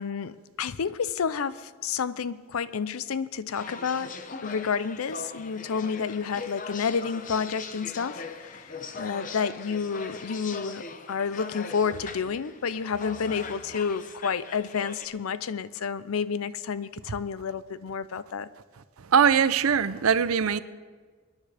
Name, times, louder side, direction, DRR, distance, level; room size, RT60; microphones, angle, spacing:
voice 1, 0.0-4.1 4.4-18.5, left 6 dB, 85° left, 16 dB, 0.5 m, -30 dB
sound 1, 3.5-15.1, left 4 dB, 35° left, 0.7 m, -40 dB
voice 2, 19.0-20.6, right 7 dB, 85° right, 15 dB, 0.6 m, -21 dB
25.5 x 10.0 x 3.4 m, 1.5 s
head